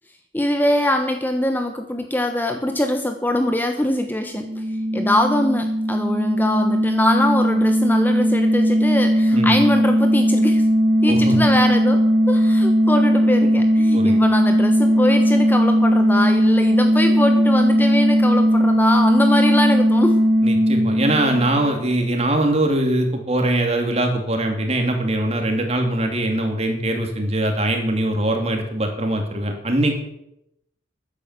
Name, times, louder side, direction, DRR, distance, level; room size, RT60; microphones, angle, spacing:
voice 1, 0.3-4.6 4.9-10.6 11.0-20.2, left 1 dB, 10° left, 6 dB, 1.0 m, -23 dB
sound 1, 4.3-21.8, equal, 55° right, 2.0 m, -18 dB
voice 2, 20.4-30.0, right 1 dB, 35° right, 3 dB, 2.9 m, -22 dB
13.5 x 9.9 x 7.6 m, 0.80 s
head